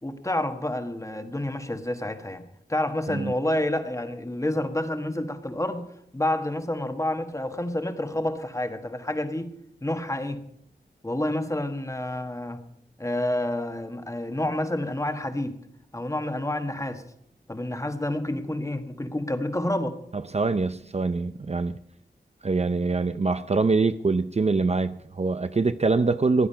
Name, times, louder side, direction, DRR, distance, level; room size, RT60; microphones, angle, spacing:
voice 1, 0.0-2.4 2.7-5.9 6.1-9.5 9.8-10.4 11.0-12.6 13.0-15.6 15.9-17.0 17.5-20.0, left 1 dB, 15° left, 8 dB, 1.4 m, -29 dB
voice 2, 20.1-21.7 22.4-26.5, right 4 dB, 40° right, 11 dB, 0.5 m, -24 dB
16.0 x 11.0 x 5.6 m, 0.70 s
wide cardioid pair, 85°, 18 cm